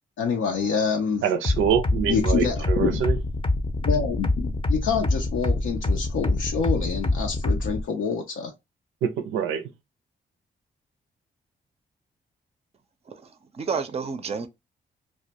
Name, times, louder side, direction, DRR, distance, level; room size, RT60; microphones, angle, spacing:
voice 1, 0.2-1.2 2.1-3.0 3.8-8.5, left 6 dB, 80° left, 0.5 m, -27 dB
voice 2, 1.2-3.2 9.0-9.7, right 8 dB, 85° right, 0.5 m, -25 dB
sound 1, 1.4-7.8, left 2 dB, 25° left, 0.6 m, -25 dB
voice 3, 13.1-14.5, right 5 dB, 30° right, 0.5 m, -31 dB
2.1 x 2.1 x 2.7 m
supercardioid pair, 50°, 20 cm